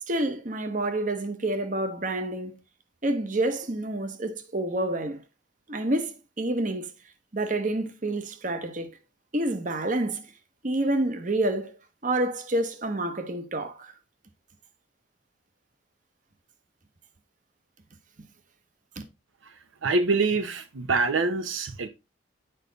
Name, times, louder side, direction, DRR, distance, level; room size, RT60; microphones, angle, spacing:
voice 1, 0.1-2.6 3.0-5.2 5.7-6.9 7.3-8.9 9.3-10.2 10.6-11.8 12.0-13.9, right 1 dB, 40° right, 1.0 m, -28 dB
voice 2, 19.8-21.9, right 3 dB, 80° right, 0.8 m, -25 dB
9.0 x 5.2 x 3.9 m
head